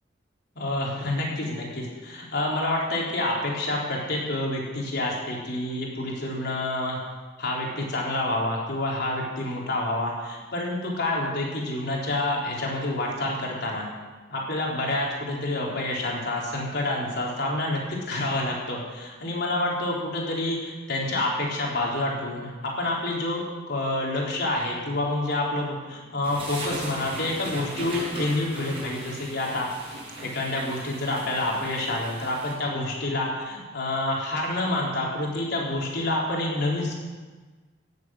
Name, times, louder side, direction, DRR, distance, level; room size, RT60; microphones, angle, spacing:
voice 1, 0.6-7.0 7.4-13.9 14.3-36.9, left 1 dB, 60° left, -2 dB, 4.0 m, -28 dB
sound 1, 26.2-32.5, right 1 dB, 30° right, 5.7 m, -37 dB
16.5 x 8.3 x 7.8 m, 1.3 s
head